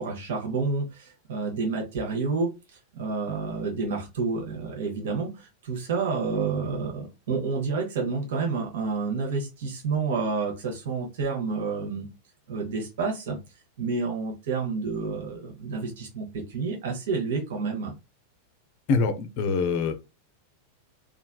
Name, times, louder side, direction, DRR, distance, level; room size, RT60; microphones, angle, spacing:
voice 1, 0.0-2.5 2.9-12.1 12.5-13.4 13.8-17.9, right 4 dB, 55° right, 0.9 m, -29 dB
voice 2, 18.9-19.9, left 4 dB, 45° left, 0.5 m, -24 dB
3.2 x 2.4 x 2.3 m
figure-of-eight pair, 90°, 0 cm